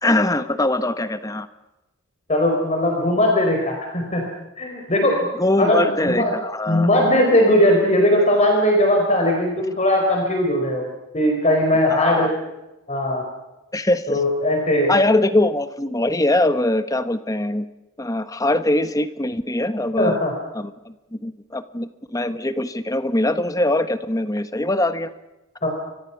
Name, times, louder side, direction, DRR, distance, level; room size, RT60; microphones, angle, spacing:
voice 1, 0.0-1.5 5.4-6.9 11.9-12.3 13.7-14.2 14.9-17.7 18.0-20.2 20.5-25.1, left 1 dB, 15° left, 11 dB, 1.2 m, -22 dB
voice 2, 2.3-4.3 4.6-5.3 5.6-6.3 6.7-12.3 12.9-13.2 14.1-14.9 20.0-20.3 25.6-25.7, left 1 dB, 30° left, 2 dB, 4.8 m, -19 dB
29.5 x 24.0 x 6.0 m, 1.0 s
head